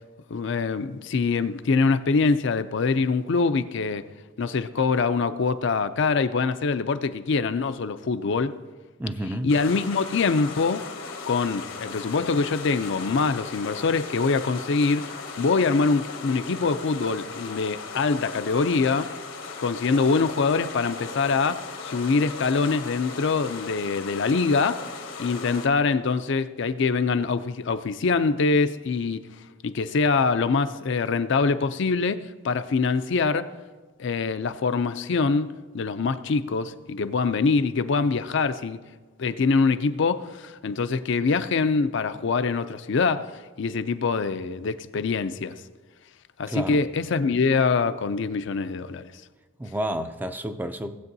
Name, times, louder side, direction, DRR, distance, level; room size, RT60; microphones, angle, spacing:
voice 1, 0.3-4.1 4.4-8.5 9.4-10.9 11.3-15.1 15.4-19.1 19.6-24.8 25.2-29.2 29.6-33.5 34.0-38.8 39.2-43.3 43.6-45.6 46.4-49.1, left 4 dB, 60° left, 0.5 m, -24 dB
voice 2, 9.0-9.5 46.5-46.8 49.6-51.0, right 1 dB, 10° right, 0.4 m, -30 dB
sound 1, 9.5-25.7, left 4 dB, 80° left, 1.2 m, -37 dB
18.0 x 8.1 x 2.7 m
head